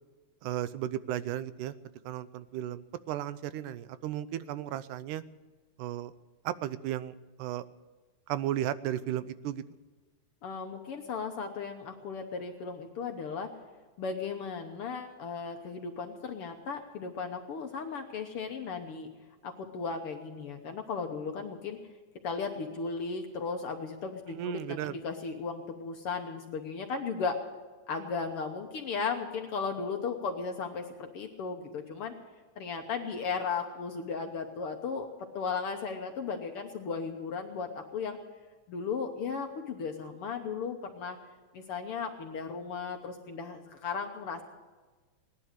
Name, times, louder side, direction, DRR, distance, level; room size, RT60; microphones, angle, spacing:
voice 1, 0.4-1.7 2.1-5.2 5.8-6.1 6.5-7.1 7.4-7.7 8.3-9.6 24.3-25.0, right 12 dB, 90° right, 15 dB, 2.1 m, -34 dB
voice 2, 10.4-13.5 14.0-19.1 19.4-21.8 22.2-27.4 27.9-32.1 32.6-38.2 38.7-41.2 41.5-44.4, left 5 dB, 65° left, 4 dB, 1.5 m, -36 dB
18.5 x 11.0 x 6.6 m, 1.3 s
omnidirectional pair, 3.5 m